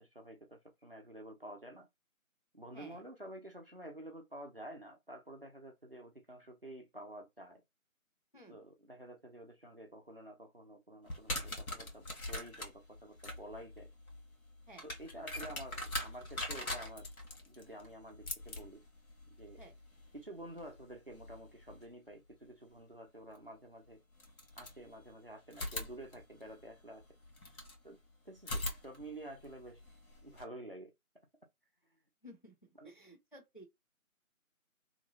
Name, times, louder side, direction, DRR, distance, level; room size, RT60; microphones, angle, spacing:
voice 1, 0.0-1.9 2.5-7.6 8.5-13.9 14.8-17.1 17.5-18.8 19.3-19.6 20.1-24.0 24.6-27.1 27.8-29.8 30.2-30.9 32.7-32.9, right 1 dB, 45° right, 0.5 m, -50 dB
sound 1, 11.1-21.9 23.3-23.4 24.1-25.1 25.5-27.8 28.4-30.4, left 1 dB, 80° left, 1.3 m, -43 dB
voice 2, 32.2-32.5 32.8-33.6, right 1 dB, 35° left, 0.5 m, -54 dB
2.8 x 2.0 x 2.5 m
figure-of-eight pair, 170°, 42 cm